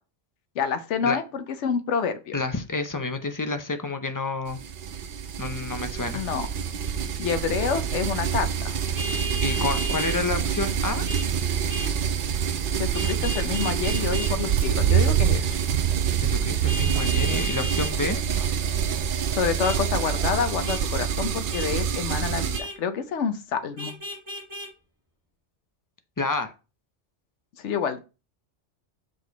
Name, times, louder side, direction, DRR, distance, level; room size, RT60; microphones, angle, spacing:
voice 1, 0.6-2.4 6.1-6.5 7.2-8.7 12.8-15.5 19.3-24.0 27.6-28.0, left 6 dB, 75° left, 1.1 m, -28 dB
voice 2, 2.3-4.6 5.4-6.2 9.4-11.0 16.2-18.2 26.2-26.5, left 3 dB, 20° left, 0.6 m, -29 dB
sound 1, 4.5-22.6, right 7 dB, 55° right, 0.7 m, -27 dB
Vehicle horn car horn honking, 8.9-10.2 11.1-11.3 11.7-11.9 12.9-14.3 16.7-17.9 19.6-19.8 20.7-20.8 21.5-21.7 22.5-22.8 23.8-24.7, equal, 15° right, 1.5 m, -34 dB
Walk footsteps, 12.0-19.1, right 10 dB, 80° right, 0.9 m, -27 dB
6.2 x 5.2 x 4.0 m
omnidirectional pair, 1.2 m